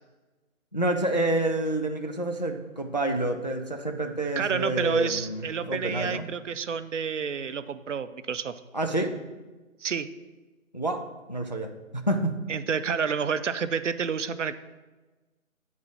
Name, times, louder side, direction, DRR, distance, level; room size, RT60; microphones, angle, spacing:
voice 1, 0.7-6.3 8.7-9.2 10.7-12.4, right 1 dB, 35° left, 4 dB, 0.4 m, -28 dB
voice 2, 4.4-8.5 9.8-10.1 12.5-14.5, right 6 dB, 60° right, 12 dB, 0.5 m, -29 dB
8.5 x 4.0 x 6.1 m, 1.2 s
figure-of-eight pair, 155°, 41 cm